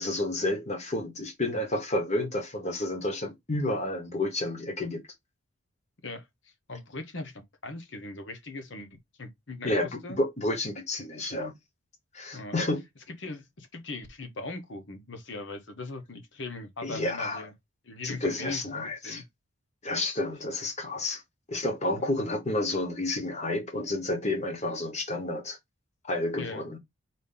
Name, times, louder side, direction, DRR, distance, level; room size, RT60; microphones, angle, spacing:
voice 1, 0.0-5.0 9.6-11.5 12.1-12.8 16.8-17.4 18.0-19.2 19.8-21.2 21.5-25.6 26.0-26.8, left 2 dB, 30° left, 1.1 m, -30 dB
voice 2, 6.0-8.9 9.2-10.2 12.3-12.5 13.2-17.5 17.8-19.2 22.0-22.1 26.3-26.7, left 2 dB, 60° left, 1.1 m, -40 dB
4.2 x 2.8 x 3.8 m
head